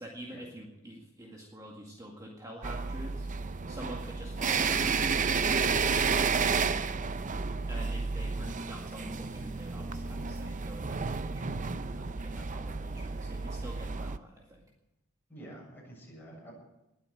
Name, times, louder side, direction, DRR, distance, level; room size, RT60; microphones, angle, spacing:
voice 1, 0.0-3.3 3.7-6.4 7.7-14.7, right 1 dB, 15° right, -1 dB, 2.0 m, -46 dB
sound 1, 2.6-14.2, right 5 dB, 35° right, 0.6 m, -31 dB
voice 2, 15.3-16.5, right 1 dB, 10° left, -3 dB, 7.4 m, -48 dB
20.5 x 8.8 x 7.9 m, 0.92 s
head